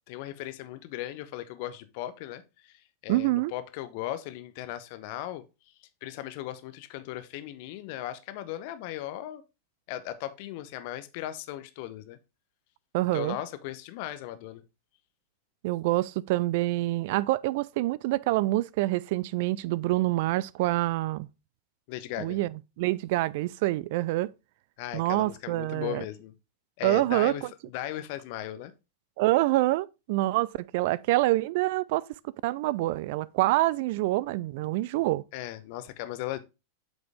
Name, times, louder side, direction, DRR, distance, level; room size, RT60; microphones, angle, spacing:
voice 1, 0.1-5.4 5.8-9.4 9.9-12.2 13.1-14.6 21.9-22.4 24.8-26.3 26.8-28.7 35.3-36.4, left 13 dB, 45° left, 0.9 m, -37 dB
voice 2, 3.1-3.5 12.9-13.4 15.6-21.3 22.2-24.3 24.9-26.0 26.8-27.5 29.2-35.2, right 18 dB, 50° right, 0.3 m, -26 dB
8.0 x 5.1 x 3.5 m
figure-of-eight pair, 90°, 0 cm